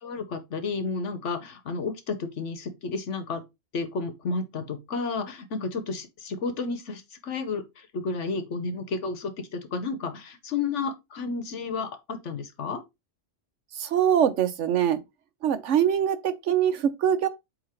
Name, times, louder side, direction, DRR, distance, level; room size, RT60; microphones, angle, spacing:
voice 1, 0.0-3.4 3.7-12.8, left 4 dB, 80° left, 1.4 m, -32 dB
voice 2, 13.8-15.0 15.4-17.3, right 9 dB, 85° right, 1.1 m, -23 dB
8.0 x 3.0 x 4.4 m
omnidirectional pair, 1.2 m